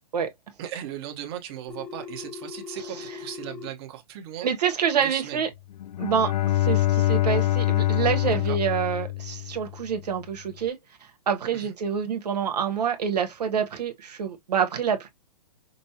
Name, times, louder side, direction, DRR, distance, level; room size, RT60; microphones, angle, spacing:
voice 1, 0.6-4.5 5.0-5.5 8.3-8.6 11.5-11.7, right 11 dB, 40° right, 1.0 m, -37 dB
Telephone, 1.7-3.7, left 6 dB, 10° left, 0.5 m, -39 dB
voice 2, 4.4-5.5 6.0-10.7 11.3-15.1, right 7 dB, 80° right, 1.1 m, -27 dB
Bowed string instrument, 5.8-9.9, left 15 dB, 75° left, 0.5 m, -25 dB
5.2 x 2.0 x 2.8 m
hypercardioid pair, 150°, 20 cm